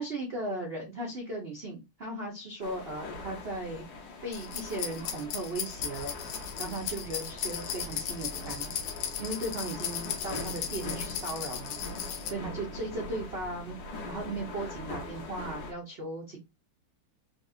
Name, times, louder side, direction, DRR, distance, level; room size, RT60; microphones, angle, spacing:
voice 1, 0.0-8.7 9.2-11.8 12.2-13.8 14.1-16.4, right 2 dB, 85° right, 0 dB, 0.5 m, -37 dB
sound 1, 2.6-15.7, left 2 dB, 60° left, 1.3 m, -42 dB
sound 2, 4.3-12.3, left 8 dB, 85° left, 1.5 m, -36 dB
sound 3, 6.1-14.0, right 1 dB, 65° right, 1.0 m, -50 dB
4.0 x 2.4 x 2.6 m, 0.23 s
omnidirectional pair, 2.3 m